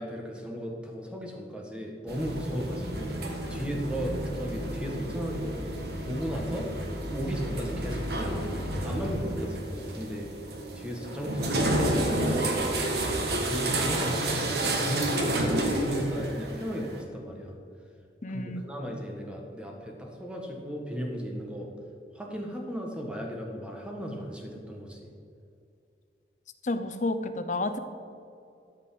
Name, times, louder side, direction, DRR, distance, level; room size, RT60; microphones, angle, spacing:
voice 1, 0.0-3.2 3.5-5.6 6.0-6.7 7.1-10.3 10.7-12.5 13.0-17.6 18.3-21.7 22.1-25.1, equal, 5° right, 0 dB, 1.5 m, -35 dB
sound 1, 2.1-17.0, right 1 dB, 65° right, 1.5 m, -30 dB
voice 2, 18.2-18.6 26.6-27.8, left 2 dB, 45° left, 9 dB, 0.7 m, -30 dB
12.5 x 5.3 x 7.6 m, 2.5 s
head